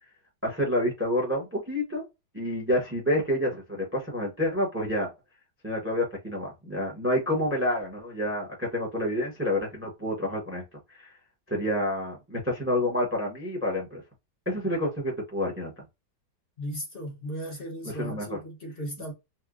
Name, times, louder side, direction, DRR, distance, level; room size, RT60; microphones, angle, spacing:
voice 1, 0.4-2.0 2.3-5.1 5.6-10.6 11.0-11.1 11.5-14.0 14.5-15.7 17.8-18.4, left 1 dB, 10° right, 0.6 m, -28 dB
voice 2, 16.6-19.1, equal, 45° left, 0.8 m, -36 dB
4.2 x 2.2 x 2.4 m
omnidirectional pair, 1.9 m